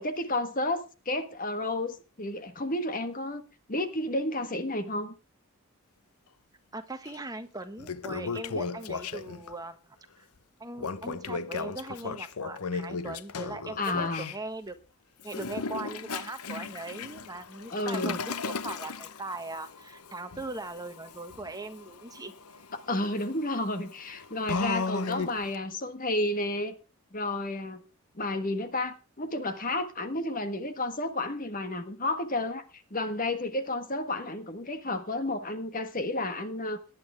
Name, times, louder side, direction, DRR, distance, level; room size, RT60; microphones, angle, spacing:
voice 1, 0.0-3.4 3.7-5.1 13.8-14.3 17.7-18.2 22.7-26.8 27.1-27.8 28.1-32.6 32.9-36.8, left 2 dB, 40° left, 10 dB, 1.4 m, -31 dB
voice 2, 6.7-9.8 10.2-10.3 10.6-14.8 15.2-22.3, right 2 dB, 15° right, 8 dB, 1.4 m, -40 dB
Toilet flush, 7.1-7.2 7.6-9.5 10.8-14.4 15.2-25.5, left 4 dB, 85° left, 0.9 m, -36 dB
18.5 x 11.0 x 3.5 m, 0.31 s
head